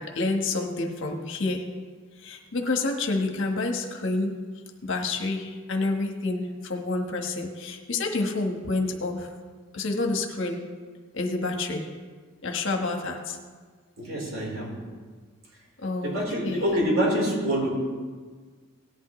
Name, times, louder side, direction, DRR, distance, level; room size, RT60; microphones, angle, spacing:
voice 1, 0.0-1.7 2.2-4.4 4.8-9.3 9.7-10.7 11.1-11.9 12.4-13.4 15.8-16.2 16.4-16.8, left 3 dB, 60° left, 3 dB, 1.4 m, -28 dB
voice 2, 14.0-14.8 16.0-17.7, equal, 65° right, -3 dB, 4.1 m, -26 dB
18.0 x 11.0 x 3.2 m, 1.5 s
head